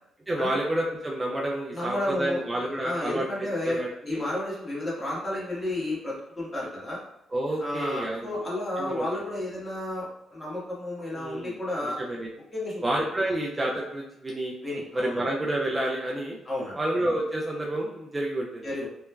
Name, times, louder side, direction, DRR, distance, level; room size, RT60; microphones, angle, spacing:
voice 1, 0.3-4.2 7.3-8.5 8.8-9.0 11.1-11.6 11.8-12.3 12.8-14.5 14.9-16.4 16.7-18.6, right 1 dB, 20° right, -2 dB, 0.4 m, -29 dB
voice 2, 1.7-2.4 2.8-7.0 7.6-12.0 12.5-12.8 14.6-15.2 16.4-16.8 18.6-18.9, left 1 dB, 20° left, -6 dB, 1.1 m, -32 dB
3.0 x 2.1 x 2.2 m, 0.81 s
cardioid pair, 90°, 0 cm